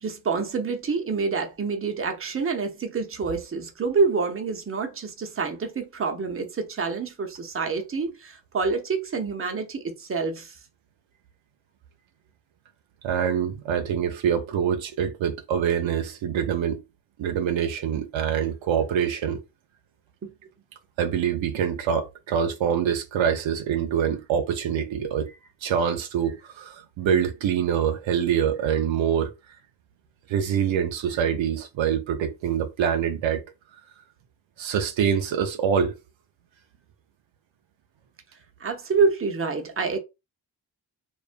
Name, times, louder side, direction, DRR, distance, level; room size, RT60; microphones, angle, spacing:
voice 1, 0.0-10.6 20.2-20.3 38.6-40.0, right 4 dB, 30° right, 0.7 m, -27 dB
voice 2, 13.0-16.8 17.2-19.4 21.0-29.3 30.3-33.4 34.6-36.0, right 8 dB, 75° right, 0.5 m, -25 dB
2.4 x 2.2 x 2.4 m
cardioid pair, 55°, 46 cm